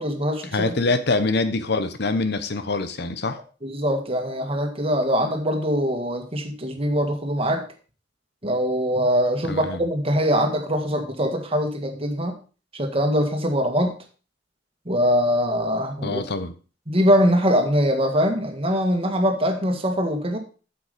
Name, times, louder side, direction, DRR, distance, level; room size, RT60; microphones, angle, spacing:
voice 1, 0.0-0.7 3.6-7.6 8.4-12.4 12.7-14.0 14.9-16.2 16.9-20.4, equal, 30° right, 4 dB, 1.8 m, -22 dB
voice 2, 0.5-3.4 9.5-9.8 16.0-16.5, left 3 dB, 65° left, 11 dB, 1.0 m, -24 dB
8.4 x 7.1 x 5.1 m, 0.36 s
head